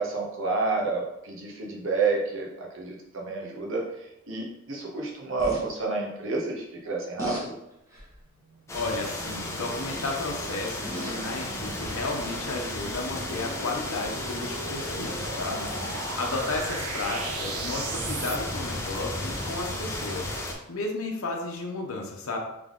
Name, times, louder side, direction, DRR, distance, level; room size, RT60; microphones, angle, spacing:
voice 1, 0.0-7.6 15.5-15.9, right 3 dB, 60° right, -1 dB, 1.0 m, -30 dB
sound 1, 5.4-5.6 7.2-7.5 7.9-8.2 9.6-10.0 10.6-11.3 12.2-12.3, equal, 15° right, 1.0 m, -36 dB
sound 2, 8.3-18.4, right 5 dB, 85° right, 0.4 m, -40 dB
voice 2, 8.7-15.6 16.2-20.3 20.7-22.4, left 2 dB, 70° left, 0 dB, 0.8 m, -33 dB
sound 3, 8.7-20.5, left 1 dB, 15° left, 0.5 m, -34 dB
3.5 x 3.4 x 3.7 m, 0.83 s
head